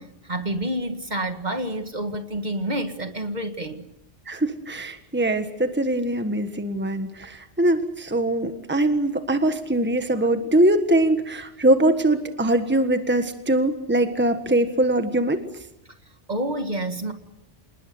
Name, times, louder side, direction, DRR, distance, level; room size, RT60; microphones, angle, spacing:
voice 1, 0.0-3.9 10.2-10.3 16.3-17.1, right 1 dB, 40° right, 1.9 m, -28 dB
voice 2, 4.3-15.4, right 1 dB, 10° right, 1.5 m, -22 dB
27.0 x 20.5 x 7.9 m
omnidirectional pair, 1.1 m